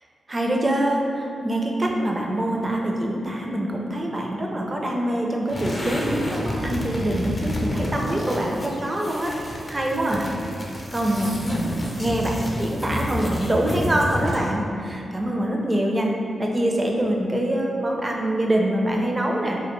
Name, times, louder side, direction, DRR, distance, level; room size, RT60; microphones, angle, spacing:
voice 1, 0.3-9.3 9.7-10.3 10.9-16.1 16.4-19.6, right 1 dB, 30° right, 0 dB, 0.4 m, -24 dB
sound 1, 5.5-14.6, equal, 30° left, 0.4 m, -29 dB
2.2 x 2.1 x 3.0 m, 2.5 s
supercardioid pair, 45°, 0 cm